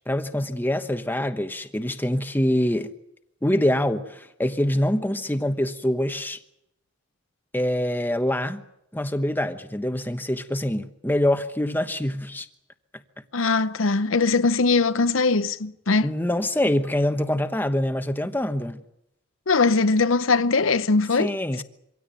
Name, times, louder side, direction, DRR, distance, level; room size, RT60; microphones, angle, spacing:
voice 1, 0.1-2.9 3.4-6.4 7.5-8.6 8.9-12.5 16.0-18.8 21.2-21.6, left 1 dB, 10° left, 1.1 m, -25 dB
voice 2, 13.3-16.1 19.5-21.3, left 3 dB, 80° left, 0.8 m, -21 dB
25.0 x 17.0 x 9.0 m
head